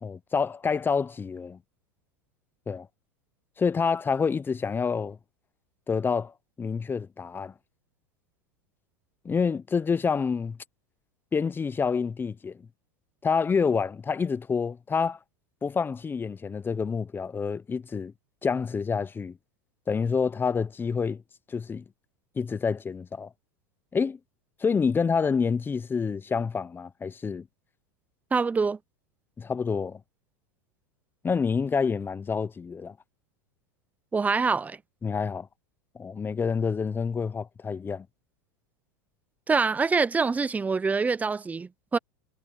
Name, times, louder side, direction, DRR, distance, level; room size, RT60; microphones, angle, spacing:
voice 1, 0.0-1.6 2.7-2.9 3.6-5.2 5.9-7.5 9.2-10.6 11.3-12.6 13.2-15.2 15.6-18.1 18.4-19.4 19.9-21.2 21.5-21.8 22.4-23.3 23.9-24.2 24.6-27.5 29.4-30.0 31.2-32.9 35.0-35.5 35.9-38.1, left 5 dB, 15° left, 0.8 m, -27 dB
voice 2, 28.3-28.8 34.1-34.8 39.5-42.0, right 4 dB, 15° right, 0.6 m, -25 dB
hypercardioid pair, 110°, 12 cm